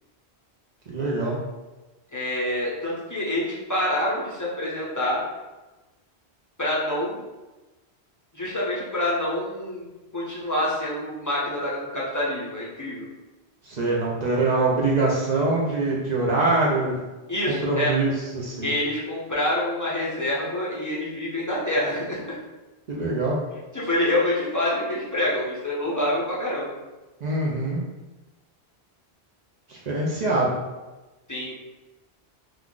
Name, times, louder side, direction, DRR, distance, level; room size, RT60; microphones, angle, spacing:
voice 1, 0.9-1.4 13.7-16.9 17.5-18.7 22.9-23.4 27.2-27.8 29.7-30.6, right 2 dB, 55° right, -4 dB, 0.5 m, -24 dB
voice 2, 2.1-5.2 6.6-7.2 8.3-9.9 10.1-13.1 17.3-18.0 18.6-22.4 23.7-26.7 31.3-31.5, left 1 dB, 25° left, -6 dB, 0.5 m, -26 dB
2.4 x 2.3 x 3.6 m, 1.1 s
omnidirectional pair, 1.1 m